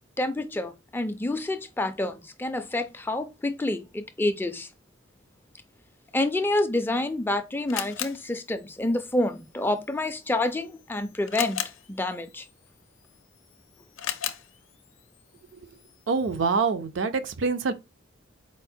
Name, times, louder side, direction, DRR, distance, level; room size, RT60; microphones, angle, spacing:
voice 1, 0.2-4.7 6.1-11.6 11.9-12.5, left 2 dB, 10° left, 0.3 m, -28 dB
Camera, 6.7-16.6, left 10 dB, 90° left, 0.5 m, -40 dB
voice 2, 16.1-17.7, right 4 dB, 70° right, 0.5 m, -25 dB
4.5 x 2.0 x 4.3 m
head